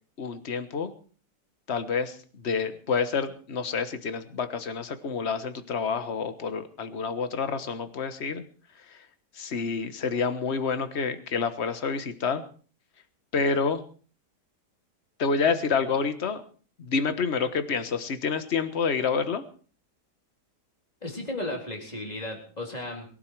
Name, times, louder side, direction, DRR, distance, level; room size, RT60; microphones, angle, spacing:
voice 1, 0.2-0.9 1.7-8.4 8.9-9.0 9.3-12.4 13.3-13.8 15.2-16.4 16.8-19.4, left 5 dB, 40° left, 10 dB, 1.5 m, -28 dB
voice 2, 21.0-23.1, left 1 dB, 20° left, 1 dB, 3.9 m, -34 dB
22.0 x 12.0 x 4.7 m, 0.42 s
omnidirectional pair, 1.9 m